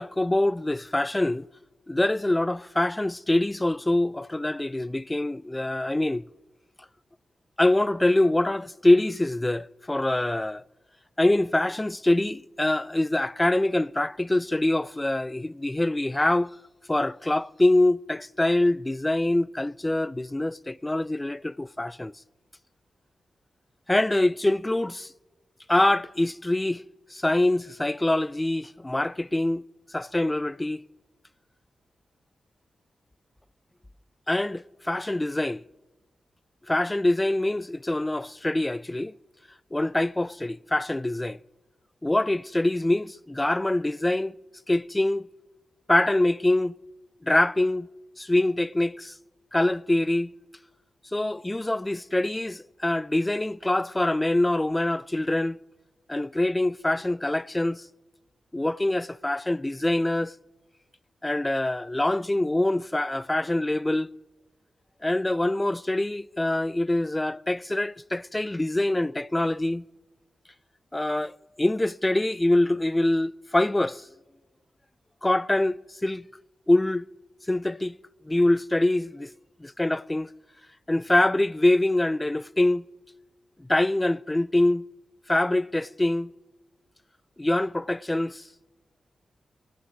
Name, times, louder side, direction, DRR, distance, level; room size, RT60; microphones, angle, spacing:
voice 1, 0.0-1.5 1.9-6.2 7.6-10.6 11.2-16.5 16.9-22.1 23.9-25.1 25.7-26.8 27.1-29.6 29.9-30.8 34.3-35.6 36.7-39.1 39.7-41.4 42.0-44.4 44.7-45.3 45.9-46.7 47.2-47.9 48.2-49.1 49.5-50.3 51.1-55.6 56.1-57.8 58.5-60.3 61.2-64.1 65.0-69.8 70.9-74.0 75.2-76.3 76.7-77.1 77.5-78.0 78.3-79.3 79.6-80.3 80.9-82.8 83.6-84.8 85.3-86.3 87.4-88.4, left 1 dB, 20° left, 0.4 m, -24 dB
24.0 x 16.5 x 3.1 m
supercardioid pair, 45°, 0 cm